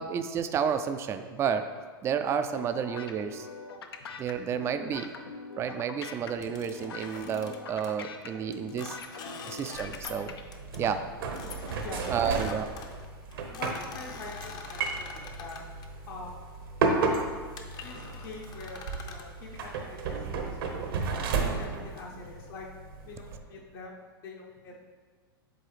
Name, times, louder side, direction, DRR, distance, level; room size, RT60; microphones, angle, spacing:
voice 1, 0.0-1.7 2.0-3.5 4.2-5.1 5.6-9.0 9.4-10.4 10.8-11.0 12.1-12.7, right 7 dB, 20° right, 9 dB, 0.3 m, -31 dB
sound 1, 2.6-10.4, left 4 dB, 85° left, 0.5 m, -43 dB
sound 2, 6.4-8.0 8.5-10.2 10.5-10.8 11.3-15.9 16.6-16.9 17.3-17.4 17.6-19.3, left 5 dB, 30° left, 0.6 m, -45 dB
sound 3, 9.7-23.4, right 4 dB, 70° right, 0.9 m, -34 dB
voice 2, 11.8-12.7 13.5-16.4 17.8-20.9 21.4-22.6 23.0-23.9 24.2-24.8, left 3 dB, 65° left, -2 dB, 1.1 m, -44 dB
7.6 x 3.8 x 3.3 m, 1.5 s
hypercardioid pair, 110°, 12 cm